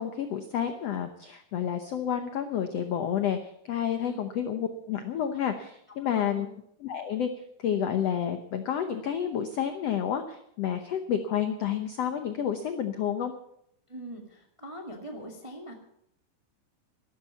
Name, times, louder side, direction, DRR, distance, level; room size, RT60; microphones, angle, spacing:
voice 1, 0.0-3.4 3.6-6.5 6.8-7.3 7.6-13.3, left 9 dB, 80° left, 7 dB, 1.4 m, -30 dB
voice 2, 6.1-6.5 13.9-15.7, right 1 dB, 15° right, 1 dB, 1.2 m, -42 dB
13.0 x 13.0 x 6.9 m, 0.73 s
omnidirectional pair, 4.3 m